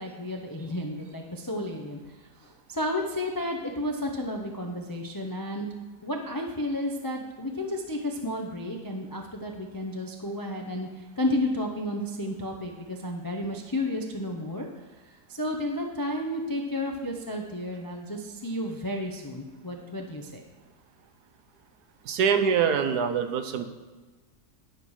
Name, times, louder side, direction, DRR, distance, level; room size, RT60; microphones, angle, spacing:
voice 1, 0.0-2.0 2.4-5.7 6.0-14.7 15.3-20.4, left 1 dB, 35° left, 1 dB, 0.3 m, -32 dB
voice 2, 22.0-23.6, right 7 dB, 80° right, 8 dB, 1.3 m, -24 dB
10.0 x 5.6 x 4.8 m, 1.3 s
omnidirectional pair, 1.7 m